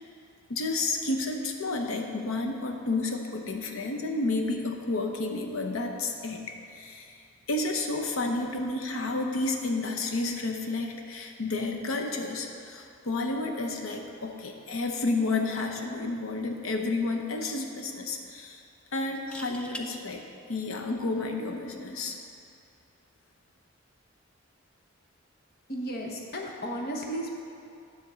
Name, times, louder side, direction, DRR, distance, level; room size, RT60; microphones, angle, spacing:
voice 1, 0.5-6.4 6.7-7.2 7.5-18.6 18.9-20.2 20.5-22.2, left 2 dB, 85° left, 3 dB, 0.8 m, -31 dB
sound 1, 16.8-16.9 19.1-19.9 21.7-21.9, left 1 dB, 5° left, 0.3 m, -42 dB
voice 2, 25.7-27.3, equal, 50° left, 0 dB, 0.9 m, -34 dB
10.0 x 3.6 x 6.6 m, 2.5 s
head